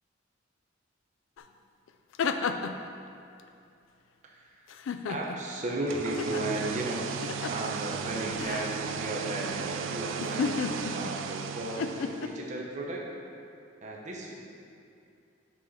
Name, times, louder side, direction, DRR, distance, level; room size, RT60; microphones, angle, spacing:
sound 1, 1.4-1.5 1.9-2.9 4.7-5.5 6.2-6.4 7.2-7.7 8.4-8.7 10.2-11.2 11.8-12.3, left 5 dB, 75° left, 0.3 m, -32 dB
voice 1, 4.2-4.7 5.1-7.2 7.5-13.0 13.8-14.3, right 1 dB, 35° right, -2 dB, 0.8 m, -35 dB
sound 2, 5.7-12.5, right 6 dB, 70° right, 0.3 m, -36 dB
5.7 x 5.2 x 4.2 m, 2.6 s
head